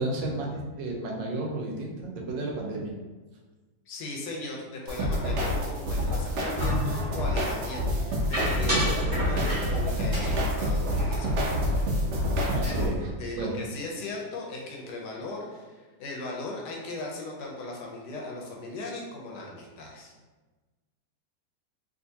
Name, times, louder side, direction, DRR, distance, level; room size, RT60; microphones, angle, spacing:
voice 1, 0.0-2.9 9.0-9.1 12.5-12.9 13.4-13.5, right 2 dB, 90° right, -1 dB, 1.4 m, -32 dB
voice 2, 3.9-11.6 12.6-12.9 13.2-20.1, left 2 dB, 70° left, -1 dB, 1.2 m, -38 dB
sound 1, 4.9-12.9, equal, 70° right, 1.2 m, -27 dB
sound 2, 6.6-7.2 8.3-9.8 10.1-11.9 12.1-12.3 12.6-13.1, equal, 20° right, 0.9 m, -32 dB
3.5 x 2.7 x 2.7 m, 1.2 s
omnidirectional pair, 1.9 m